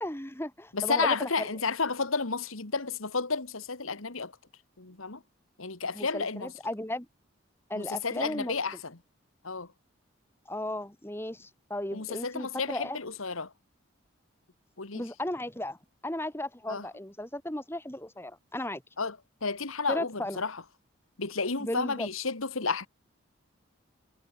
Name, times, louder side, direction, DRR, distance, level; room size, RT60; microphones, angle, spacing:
voice 1, 0.0-1.5 5.9-7.1 7.7-8.5 10.4-13.0 14.9-15.8 16.0-18.8 19.9-20.4 21.6-22.1, left 1 dB, 10° left, 1.7 m, -35 dB
voice 2, 0.7-4.3 4.8-5.2 5.6-6.5 7.7-9.0 9.4-9.7 11.9-13.5 14.8-15.1 16.7-16.9 19.0-20.6 21.2-22.9, left 4 dB, 90° left, 2.0 m, -32 dB
head